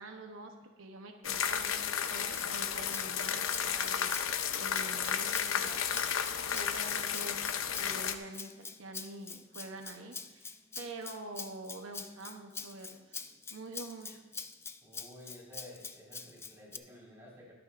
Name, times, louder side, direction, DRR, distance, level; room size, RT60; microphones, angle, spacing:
voice 1, 0.0-4.1 4.5-7.4 7.8-13.2 13.5-14.2, right 2 dB, 75° right, 4 dB, 0.9 m, -46 dB
sound 1, 1.2-8.2, left 8 dB, 90° left, 0.7 m, -33 dB
Rattle (instrument), 2.4-16.8, left 5 dB, 15° left, 0.4 m, -45 dB
voice 2, 14.8-17.5, left 1 dB, 15° right, -5 dB, 4.5 m, -52 dB
23.0 x 8.7 x 2.6 m, 1.3 s
head